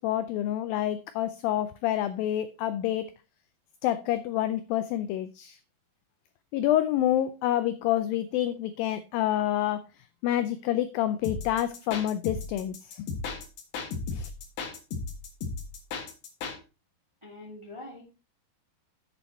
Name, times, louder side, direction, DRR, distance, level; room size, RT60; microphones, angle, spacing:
voice 1, 0.0-3.1 3.8-5.6 6.5-9.8 10.2-13.1 14.1-14.3, left 12 dB, 85° left, 12 dB, 2.0 m, -28 dB
sound 1, 11.2-16.6, left 4 dB, 60° left, 2.7 m, -35 dB
voice 2, 17.2-18.0, left 2 dB, 10° right, -1 dB, 1.7 m, -43 dB
8.5 x 7.0 x 4.2 m, 0.30 s
omnidirectional pair, 4.7 m